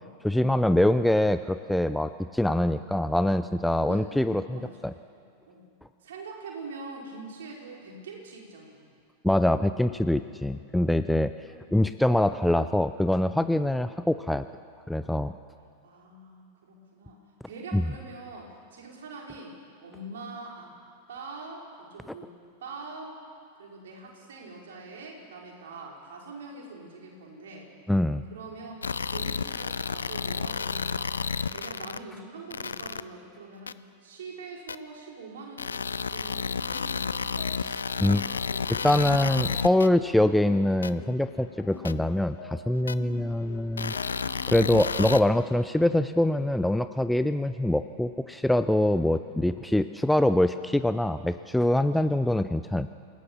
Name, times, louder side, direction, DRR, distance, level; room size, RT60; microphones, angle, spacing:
voice 1, 0.2-4.9 9.2-11.3 11.7-14.5 14.9-15.3 17.7-17.8 27.9-28.2 38.0-38.3 38.7-43.9 44.5-52.9, left 1 dB, 5° left, 11 dB, 0.6 m, -24 dB
voice 2, 3.9-4.9 5.5-5.7 6.0-8.8 11.5-11.6 14.0-14.1 15.8-17.2 17.4-20.7 21.1-22.3 22.6-23.2 23.5-27.7 28.3-28.8 29.1-31.1 31.5-37.5 38.1-38.3 43.1-43.3 48.9-49.1 49.7-49.9 51.9-52.1, right 3 dB, 60° right, -1 dB, 5.2 m, -44 dB
sound 1, 28.8-32.0 32.5-33.0 33.7-33.8 34.7-34.8 35.6-39.9 40.8-40.9 41.8-41.9 42.9-43.0 43.8-45.2, left 5 dB, 75° left, 0.6 m, -31 dB
sound 2, 36.7-45.4, left 7 dB, 55° left, 2.7 m, -46 dB
28.0 x 17.5 x 7.2 m, 2.2 s
figure-of-eight pair, 90°, 0 cm